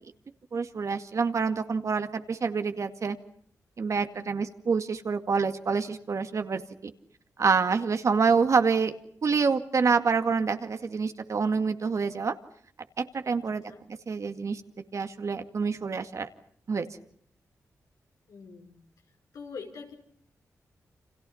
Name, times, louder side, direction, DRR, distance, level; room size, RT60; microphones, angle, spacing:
voice 1, 0.5-3.2 3.8-6.9 7.4-8.9 9.2-12.3 13.0-13.6 14.1-14.6 14.9-16.3 16.7-16.9, right 5 dB, 60° right, 8 dB, 2.1 m, -27 dB
voice 2, 4.1-4.5 13.5-13.8 18.3-18.8 19.3-19.9, left 5 dB, 80° left, 3 dB, 5.3 m, -44 dB
30.0 x 27.0 x 5.7 m, 0.63 s
cardioid pair, 65°, 6 cm